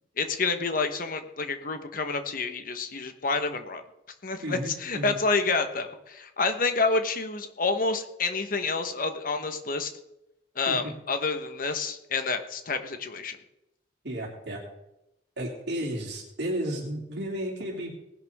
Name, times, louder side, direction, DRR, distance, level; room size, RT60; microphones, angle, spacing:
voice 1, 0.2-3.8 4.2-9.9 10.5-13.4, left 4 dB, 50° left, 8 dB, 1.3 m, -28 dB
voice 2, 4.4-5.2 10.7-10.9 14.0-14.6 15.4-17.9, right 1 dB, 65° right, -2 dB, 3.1 m, -33 dB
19.0 x 11.0 x 3.7 m, 0.87 s
head